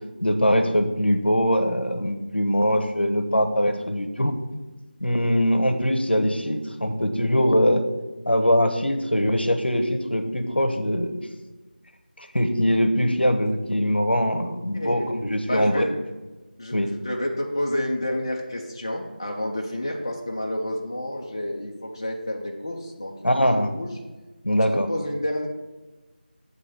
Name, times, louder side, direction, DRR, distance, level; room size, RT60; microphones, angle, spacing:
voice 1, 0.2-4.3 5.0-7.8 8.3-11.2 12.2-15.9 16.7-16.9 23.2-23.9 24.4-24.9, equal, 80° left, 7 dB, 0.8 m, -22 dB
voice 2, 14.7-15.1 15.5-15.9 16.6-23.9 24.4-24.6 24.9-25.5, left 1 dB, 25° left, 0 dB, 0.4 m, -29 dB
6.9 x 2.7 x 5.7 m, 1.2 s
figure-of-eight pair, 170°, 6 cm